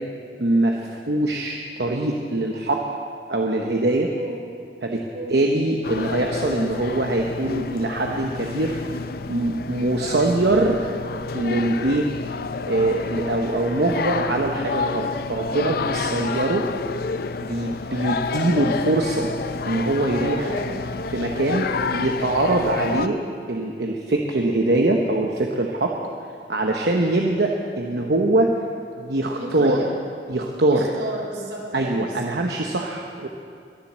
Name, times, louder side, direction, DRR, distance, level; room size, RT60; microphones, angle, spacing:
voice 1, 0.4-2.8 3.3-4.1 4.8-8.8 9.3-10.8 11.3-12.1 12.7-16.7 17.5-19.3 19.6-20.5 21.1-23.2 23.5-26.0 26.5-28.5 29.0-29.8 30.3-30.9 31.7-33.3, right 2 dB, 65° right, 1 dB, 1.0 m, -23 dB
sound 1, 5.8-23.1, left 4 dB, 55° left, 0.5 m, -29 dB
voice 2, 20.2-20.9 22.5-22.8 29.3-29.9 30.7-32.3, right 1 dB, 85° right, -1 dB, 3.6 m, -33 dB
22.0 x 7.5 x 7.4 m, 2.3 s
head